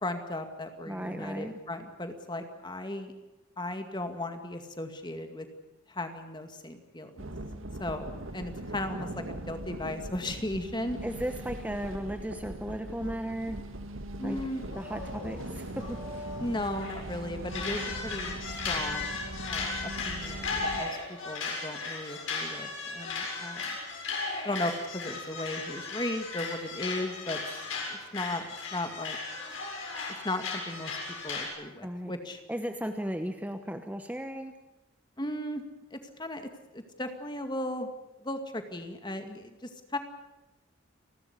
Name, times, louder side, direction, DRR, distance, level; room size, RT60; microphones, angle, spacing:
voice 1, 0.0-3.1 3.6-5.5 5.9-7.3 7.8-11.0 14.2-14.6 16.4-21.0 21.2-23.7 24.4-27.4 27.9-28.5 28.7-29.2 30.2-31.0 31.2-32.4 35.2-35.6 35.9-36.5 36.7-37.9 38.2-40.0, left 1 dB, 20° left, 7 dB, 2.1 m, -36 dB
voice 2, 0.8-1.5 11.0-13.6 14.2-14.4 14.7-16.3 31.8-32.1 32.5-34.5, equal, 5° right, 6 dB, 1.1 m, -35 dB
sound 1, 7.2-20.8, right 1 dB, 70° right, 1.8 m, -40 dB
sound 2, 14.4-17.1 17.5-31.5, left 4 dB, 70° left, 7.5 m, -36 dB
30.0 x 12.5 x 9.9 m, 1.0 s
head